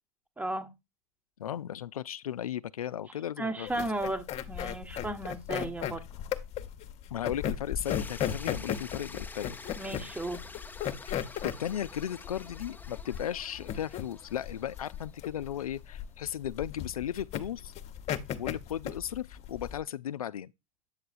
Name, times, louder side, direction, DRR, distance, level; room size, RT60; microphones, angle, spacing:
voice 1, 0.4-0.7 3.4-6.1 9.8-10.4, right 1 dB, 10° right, 1.1 m, -34 dB
voice 2, 1.4-3.9 7.1-9.6 11.0-17.7 18.3-20.5, left 10 dB, 85° left, 0.4 m, -36 dB
sound 1, 3.7-19.8, left 10 dB, 35° left, 0.9 m, -35 dB
sound 2, 7.8-15.9, left 3 dB, 10° left, 0.7 m, -48 dB
8.6 x 6.6 x 2.5 m
hypercardioid pair, 90°, 18 cm